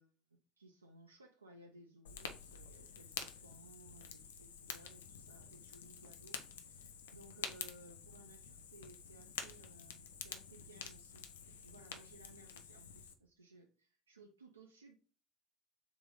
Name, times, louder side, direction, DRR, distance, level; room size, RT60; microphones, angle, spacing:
voice 1, 0.0-14.9, right 2 dB, 85° right, 2 dB, 0.4 m, -60 dB
Fire, 2.0-13.1, left 7 dB, 70° left, 0.4 m, -49 dB
3.8 x 3.0 x 3.8 m, 0.38 s
figure-of-eight pair, 60°, 0 cm